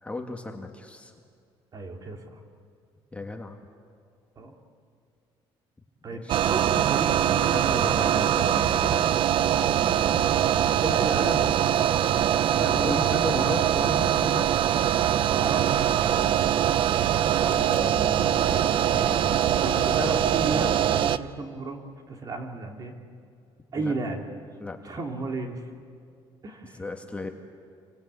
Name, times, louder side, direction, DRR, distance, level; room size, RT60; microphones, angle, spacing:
voice 1, 0.0-1.1 3.1-3.6 6.1-6.4 7.4-10.3 12.5-14.8 17.4-18.6 18.9-19.5 23.8-23.9 24.6-24.8 26.7-27.3, left 2 dB, 10° left, 3 dB, 1.9 m, -36 dB
voice 2, 1.7-2.3 4.4-4.5 6.0-7.6 10.8-11.9 12.8-13.0 15.3-16.3 19.4-21.8 22.1-22.9 23.7-24.2 24.8-25.6 26.4-26.8, right 2 dB, 40° right, 2 dB, 3.1 m, -32 dB
sound 1, 6.3-21.2, right 10 dB, 55° right, 0.7 m, -23 dB
28.5 x 24.5 x 8.5 m, 2.2 s
cardioid pair, 135°, 10 cm